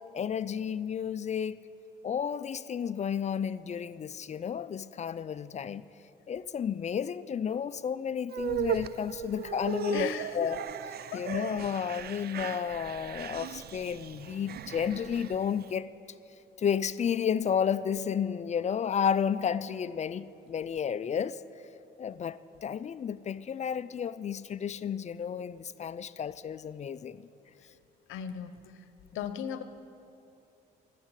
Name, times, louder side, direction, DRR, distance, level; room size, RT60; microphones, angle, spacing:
voice 1, 0.1-1.6 2.0-5.8 6.3-10.6 11.1-15.9 16.6-21.4 22.0-27.3, left 7 dB, 35° left, 15 dB, 0.4 m, -32 dB
sound 1, 8.3-15.7, right 9 dB, 55° right, 0.4 m, -37 dB
voice 2, 9.9-10.6 11.1-11.5 28.1-28.8 29.1-29.6, left 8 dB, 85° left, 11 dB, 0.8 m, -37 dB
12.0 x 7.5 x 9.8 m, 2.8 s
cardioid pair, 90°, 20 cm